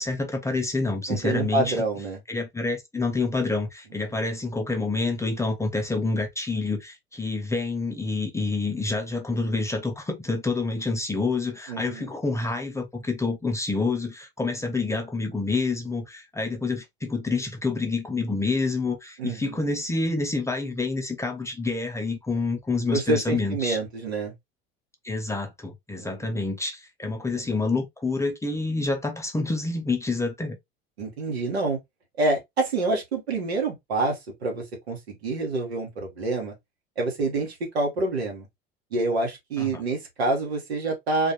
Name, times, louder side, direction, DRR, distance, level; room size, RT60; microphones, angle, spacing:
voice 1, 0.0-1.8 2.3-23.8 25.0-30.6 39.6-39.8, left 3 dB, 10° left, 0.5 m, -28 dB
voice 2, 1.1-2.2 11.7-12.1 19.2-19.6 22.9-24.3 26.0-26.4 27.0-27.1 31.0-31.8 32.2-36.5 37.0-38.5 38.9-41.3, right 2 dB, 85° right, 1.1 m, -27 dB
2.4 x 2.2 x 2.6 m
hypercardioid pair, 70°, 31 cm